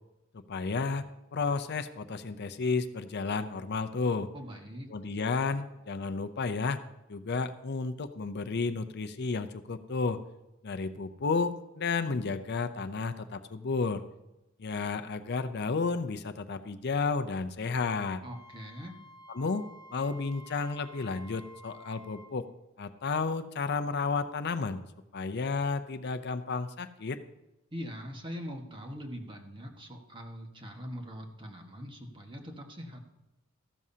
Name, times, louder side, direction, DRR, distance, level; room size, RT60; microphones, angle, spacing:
voice 1, 0.3-1.1 1.3-4.3 4.9-6.8 7.1-10.2 10.6-14.0 14.6-18.2 19.3-19.6 19.9-22.5 22.8-24.8 25.1-27.2, left 4 dB, 55° left, 10 dB, 0.6 m, -32 dB
voice 2, 4.3-4.9 18.2-19.0 27.7-33.0, equal, 25° right, 2 dB, 1.5 m, -42 dB
Wind instrument woodwind instrument, 18.2-22.3, equal, 20° left, 0.9 m, -52 dB
14.5 x 12.5 x 2.8 m, 0.96 s
head